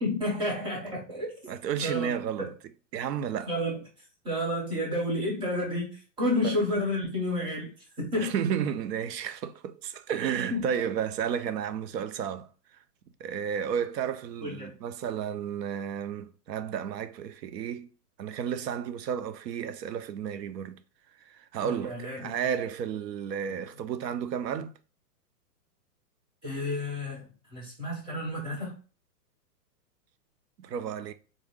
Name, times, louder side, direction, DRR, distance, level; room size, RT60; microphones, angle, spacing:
voice 1, 0.0-1.5 1.8-2.5 3.5-3.8 4.2-7.7 8.0-8.3 10.5-10.7 14.4-14.7 21.6-22.3 26.4-27.2 27.5-28.8, left 1 dB, 10° right, 0.8 m, -30 dB
voice 2, 1.5-2.5 2.9-3.5 6.4-6.6 8.2-12.5 13.2-17.9 18.2-20.8 21.3-24.7 30.6-31.1, right 8 dB, 80° right, 0.6 m, -32 dB
3.8 x 2.1 x 3.4 m
hypercardioid pair, 145°, 49 cm